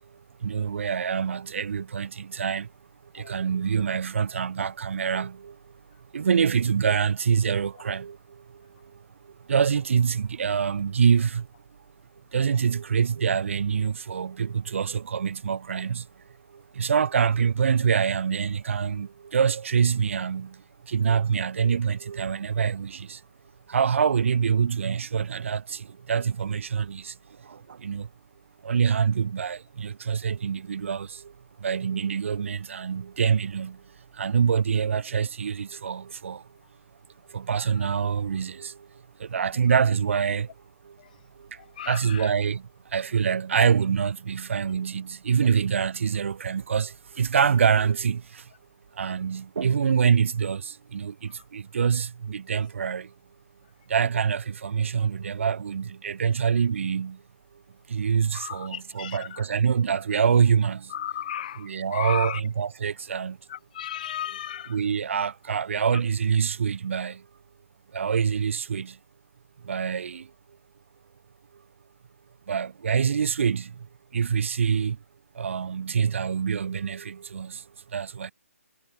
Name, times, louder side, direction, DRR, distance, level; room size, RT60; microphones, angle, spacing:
voice 1, 0.4-2.7 3.1-5.6 6.1-8.2 9.5-11.5 12.3-16.0 16.8-20.6 20.9-23.2 23.7-27.1 27.5-28.1 28.6-31.3 31.6-33.8 34.2-36.4 37.3-38.8 39.2-40.5 40.9-41.0 41.9-42.6 42.9-48.4 49.0-53.1 53.9-57.2 57.9-60.9 61.6-63.4 64.7-67.2 67.9-69.0 69.6-70.3 72.5-73.7 74.1-75.0 75.4-77.6 77.9-78.3, right 7 dB, 60° right, 0.4 m, -25 dB
voice 2, 41.6-42.3 58.3-59.4 60.9-62.4 63.5-64.8, left 11 dB, 35° left, 0.4 m, -35 dB
figure-of-eight pair, 145°, 8 cm